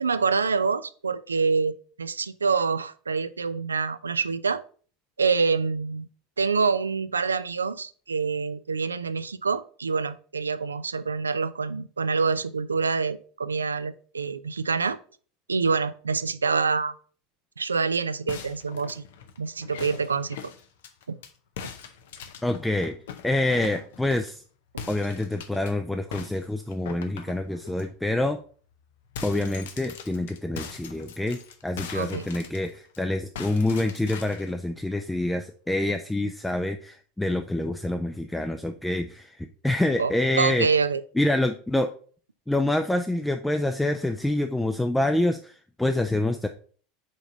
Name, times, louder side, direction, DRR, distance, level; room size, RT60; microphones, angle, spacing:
voice 1, 0.0-4.6 5.2-6.1 6.4-15.0 15.5-16.9 17.6-19.0 19.4-20.5 21.1-21.2 24.7-24.9 31.9-32.3 40.0-40.1 40.4-41.0, right 5 dB, 80° right, 0.3 m, -26 dB
sound 1, 18.3-21.3 21.6-24.4 24.8-25.7 26.1-27.9 28.3-28.4 28.7-33.0 33.4-34.5, left 7 dB, 65° left, 0.7 m, -41 dB
voice 2, 22.4-23.0 23.2-24.4 24.9-28.4 29.2-40.7 41.2-41.9 42.5-46.5, left 1 dB, 5° left, 0.4 m, -26 dB
5.1 x 3.9 x 5.1 m
figure-of-eight pair, 80°, 0 cm